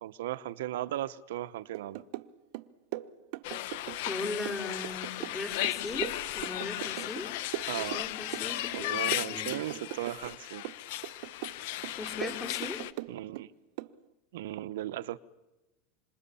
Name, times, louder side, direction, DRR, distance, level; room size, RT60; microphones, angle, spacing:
voice 1, 0.0-2.0 7.7-8.0 8.7-10.6 13.1-13.5 14.3-15.2, right 13 dB, 85° right, 1.0 m, -36 dB
sound 1, 1.7-2.3 2.5-4.2 4.5-7.3 7.5-8.5 8.7-10.4 10.6-11.6 11.8-13.5 13.8-14.0, right 17 dB, 60° right, 1.0 m, -40 dB
sound 2, 3.4-12.9, left 15 dB, 65° left, 1.1 m, -36 dB
voice 2, 4.1-7.3 7.8-9.5 12.0-12.8, left 3 dB, 15° left, 3.1 m, -38 dB
28.0 x 26.0 x 7.1 m
supercardioid pair, 155°, 0 cm